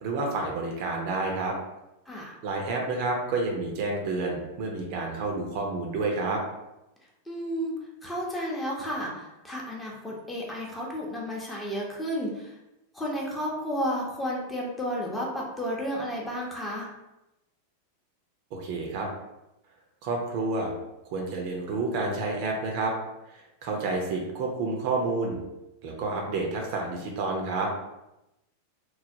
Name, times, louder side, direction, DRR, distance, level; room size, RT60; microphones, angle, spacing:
voice 1, 0.0-1.6 2.4-6.4 18.5-19.1 20.0-20.7 21.1-23.0 23.3-25.4 25.8-27.7, right 3 dB, 45° right, 1 dB, 0.5 m, -29 dB
voice 2, 2.1-2.4 7.3-7.8 8.0-12.6 12.9-16.9, equal, 10° left, -3 dB, 0.7 m, -32 dB
3.1 x 2.1 x 2.6 m, 0.92 s
figure-of-eight pair, 90°, 0 cm